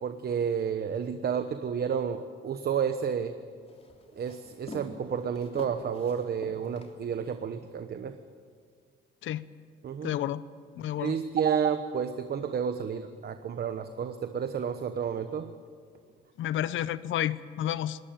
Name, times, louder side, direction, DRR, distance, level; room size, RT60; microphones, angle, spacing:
voice 1, 0.0-3.3 4.2-8.2 9.8-10.2 11.0-15.5, right 7 dB, 50° right, 9 dB, 1.1 m, -31 dB
Walk footsteps, 3.1-7.5, left 2 dB, 30° left, 3.4 m, -46 dB
voice 2, 10.0-10.4 10.8-11.1 16.4-18.0, left 11 dB, 75° left, 16 dB, 0.8 m, -30 dB
20.5 x 18.0 x 9.3 m, 2.1 s
cardioid pair, 90°, 20 cm